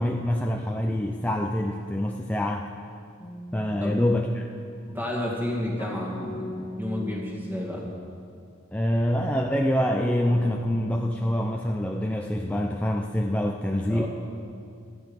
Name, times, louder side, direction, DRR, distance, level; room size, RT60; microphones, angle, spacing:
voice 1, 0.0-2.7 3.5-4.5 8.7-14.1, left 1 dB, 5° left, 1 dB, 0.5 m, -25 dB
sound 1, 3.2-4.1 5.8-8.1 9.8-11.1, left 1 dB, 20° left, 0.8 m, -39 dB
voice 2, 4.9-7.9 13.9-14.1, left 1 dB, 10° right, -2 dB, 2.1 m, -31 dB
16.5 x 11.5 x 5.2 m, 2.4 s
head